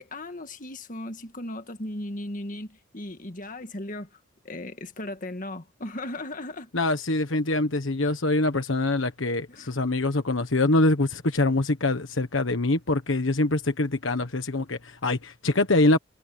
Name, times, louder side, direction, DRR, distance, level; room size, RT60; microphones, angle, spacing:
voice 1, 0.0-4.1 4.4-6.7 9.5-9.7, left 1 dB, 40° left, 1.8 m, -36 dB
voice 2, 6.7-16.0, left 2 dB, 80° left, 1.4 m, -24 dB
head